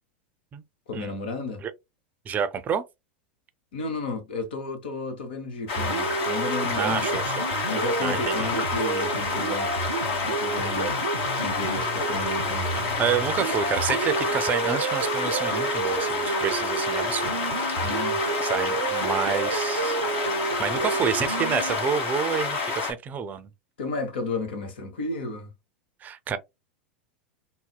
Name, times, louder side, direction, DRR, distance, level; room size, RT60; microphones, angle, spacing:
voice 1, 0.9-1.6 3.7-7.2 7.7-9.8 10.2-11.0 11.4-13.0 17.8-18.2 20.8-20.9 23.8-25.5, left 3 dB, 75° left, 1.0 m, -33 dB
voice 2, 2.3-2.8 6.8-7.5 8.0-8.5 13.0-17.3 17.6-18.1 18.4-20.0 20.6-23.5 26.0-26.4, right 7 dB, 30° right, 0.5 m, -29 dB
sound 1, 5.7-22.9, left 4 dB, 50° left, 1.3 m, -28 dB
sound 2, 5.8-21.8, right 7 dB, 80° right, 0.4 m, -31 dB
4.0 x 2.1 x 2.2 m
hypercardioid pair, 95°, 6 cm